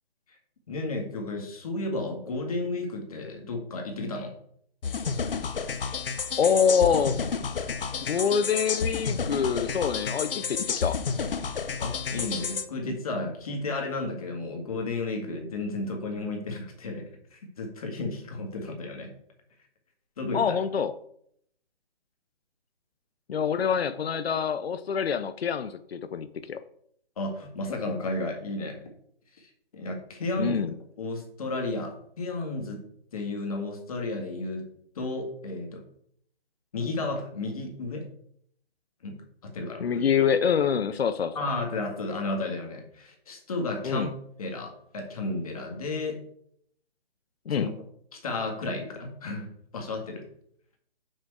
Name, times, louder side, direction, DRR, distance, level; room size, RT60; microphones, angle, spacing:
voice 1, 0.7-4.3 11.8-19.1 20.2-20.6 27.2-28.9 29.3-30.6 31.0-32.8 33.1-34.7 35.0-35.8 36.7-38.1 39.0-39.2 39.4-40.0 41.4-44.1 44.4-46.2 47.5-47.7 48.1-50.2, left 2 dB, 35° left, 2 dB, 1.9 m, -33 dB
sound 1, 4.8-12.7, left 5 dB, 65° left, 0.8 m, -30 dB
voice 2, 6.4-7.2 8.0-11.0 20.3-20.9 23.3-26.6 30.4-30.7 39.8-41.4 43.8-44.1 47.5-47.7, left 7 dB, 90° left, 12 dB, 0.6 m, -25 dB
6.3 x 6.2 x 4.7 m, 0.68 s
hypercardioid pair, 170°, 30 cm